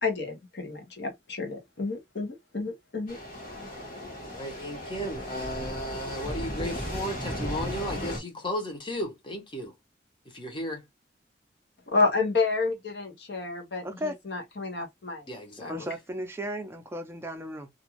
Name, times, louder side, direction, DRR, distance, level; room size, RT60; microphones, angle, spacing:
voice 1, 0.0-3.2 11.9-15.2 15.6-15.7, left 3 dB, 70° left, 0.9 m, -30 dB
sound 1, 3.1-8.2, equal, 55° left, 1.3 m, -35 dB
voice 2, 4.2-9.8 10.2-10.8 15.3-15.9, equal, 30° left, 0.9 m, -35 dB
voice 3, 13.8-14.2 15.7-17.7, equal, 15° right, 0.5 m, -35 dB
2.5 x 2.3 x 2.9 m
head